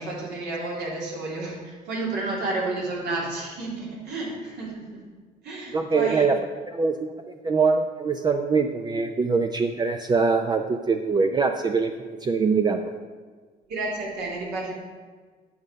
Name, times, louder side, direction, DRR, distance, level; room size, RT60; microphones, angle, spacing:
voice 1, 0.0-5.1 5.4-6.3 13.7-14.7, right 2 dB, 75° right, -4 dB, 3.1 m, -31 dB
voice 2, 5.7-6.4 6.7-12.8, right 4 dB, 25° right, 5 dB, 0.5 m, -23 dB
9.5 x 6.4 x 5.3 m, 1.5 s
cardioid pair, 110°, 17 cm